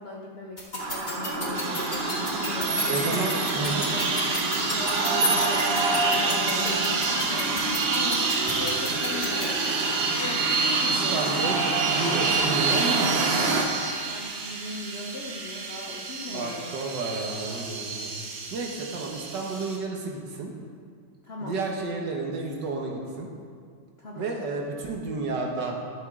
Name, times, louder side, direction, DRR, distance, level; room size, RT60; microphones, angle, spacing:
voice 1, 0.0-4.1 4.7-9.6 10.2-11.2 13.8-16.7 21.2-21.6 24.0-24.3, left 2 dB, 70° left, -1 dB, 0.6 m, -39 dB
sound 1, 0.6-9.4, left 2 dB, 25° left, 1.3 m, -32 dB
sound 2, 0.8-13.6, right 3 dB, 45° right, 0.8 m, -29 dB
sound 3, 1.5-19.8, right 4 dB, 85° right, 2.0 m, -29 dB
voice 2, 2.9-3.9 11.1-13.2 16.3-18.1 18.5-20.5 21.4-23.3 24.2-25.8, right 3 dB, 60° right, 0 dB, 1.7 m, -31 dB
12.0 x 7.8 x 3.6 m, 2.2 s
omnidirectional pair, 2.3 m